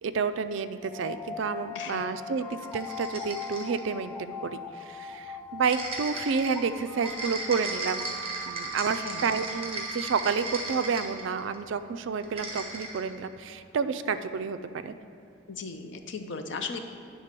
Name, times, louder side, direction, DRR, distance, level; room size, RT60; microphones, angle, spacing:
voice 1, 0.0-8.1 8.5-14.6 14.8-14.9, right 5 dB, 60° right, 11 dB, 0.3 m, -30 dB
sound 1, 0.8-11.8, left 2 dB, 5° left, 0.4 m, -41 dB
voice 2, 1.7-2.1 8.9-9.3 15.5-16.8, left 5 dB, 60° left, 6 dB, 0.6 m, -37 dB
sound 2, 2.6-3.9 5.6-11.5 12.2-13.1, right 2 dB, 30° right, 1.2 m, -36 dB
9.5 x 3.7 x 6.6 m, 2.7 s
head